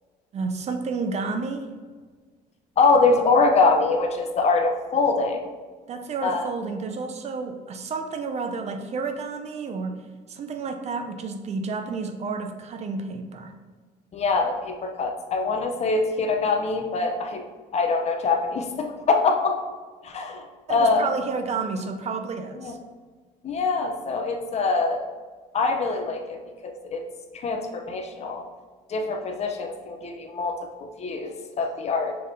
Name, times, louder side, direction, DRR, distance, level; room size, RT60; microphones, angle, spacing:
voice 1, 0.3-1.7 5.9-10.0 10.3-13.5 20.7-22.8, right 4 dB, 40° right, 5 dB, 0.4 m, -30 dB
voice 2, 2.8-5.4 6.2-6.5 14.1-17.4 17.7-19.6 20.0-21.1 22.6-22.7 23.4-25.1 25.5-27.0 27.3-28.4 28.9-32.2, left 3 dB, 40° left, 4 dB, 0.5 m, -24 dB
5.5 x 3.3 x 2.6 m, 1.5 s
cardioid pair, 110°, 17 cm